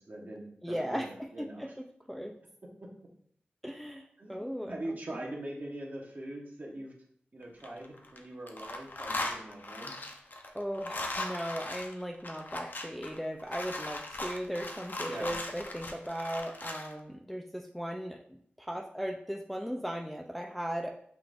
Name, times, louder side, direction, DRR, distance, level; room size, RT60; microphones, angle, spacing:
voice 1, 0.0-1.7 2.8-2.9 4.2-4.4 4.7-6.9 7.3-9.9 15.1-15.3, right 1 dB, 50° right, -1 dB, 1.0 m, -42 dB
voice 2, 0.6-2.3 3.6-5.2 10.5-21.0, equal, ahead, 3 dB, 0.3 m, -37 dB
sound 1, 7.4-8.2 8.5-16.9, left 2 dB, 55° left, 0.6 m, -39 dB
5.8 x 2.5 x 3.3 m, 0.65 s
wide cardioid pair, 75°, 4 cm